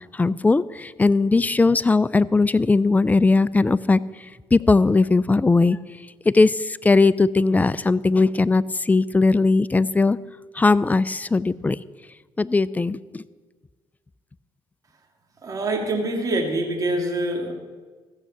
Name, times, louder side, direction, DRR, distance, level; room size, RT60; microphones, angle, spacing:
voice 1, 0.1-4.0 4.5-5.8 6.3-10.2 10.5-11.8 12.4-13.2, left 3 dB, 15° left, 17 dB, 0.4 m, -19 dB
voice 2, 15.4-17.5, right 1 dB, 40° right, 1 dB, 2.5 m, -25 dB
14.5 x 6.8 x 7.4 m, 1.4 s
cardioid pair, 80°, 10 cm